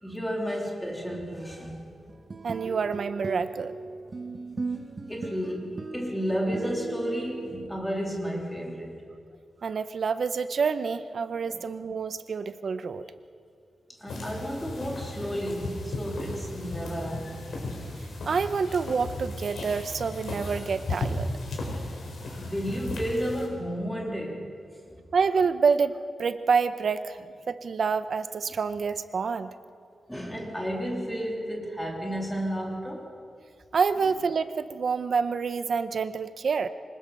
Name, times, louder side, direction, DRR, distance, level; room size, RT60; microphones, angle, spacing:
voice 1, 0.0-1.8 5.1-9.0 11.5-11.6 14.0-17.4 22.3-24.4 30.1-33.1, equal, 5° left, -1 dB, 3.0 m, -32 dB
sound 1, 2.1-7.6, right 4 dB, 30° right, 1.2 m, -37 dB
voice 2, 2.4-3.7 9.6-13.1 18.2-21.3 25.1-27.2 27.5-29.5 33.7-36.7, right 5 dB, 55° right, 12 dB, 0.7 m, -27 dB
sound 2, 14.1-23.5, left 2 dB, 80° left, 4.4 m, -35 dB
25.5 x 19.5 x 5.4 m, 2.3 s
wide cardioid pair, 165°, 0 cm